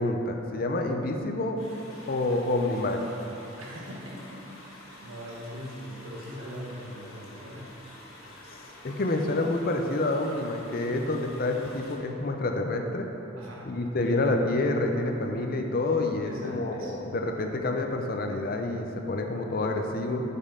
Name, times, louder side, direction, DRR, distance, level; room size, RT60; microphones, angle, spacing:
voice 1, 0.0-1.6 2.1-3.1 8.5-13.1 13.7-20.2, left 2 dB, 45° left, 3 dB, 0.5 m, -28 dB
sound 1, 1.6-12.0, left 1 dB, 90° left, 1.6 m, -49 dB
voice 2, 3.6-4.7 5.0-7.7 13.4-13.8 14.0-14.2 16.2-16.9, equal, 80° right, -4 dB, 1.2 m, -41 dB
8.2 x 5.4 x 3.7 m, 3.0 s
head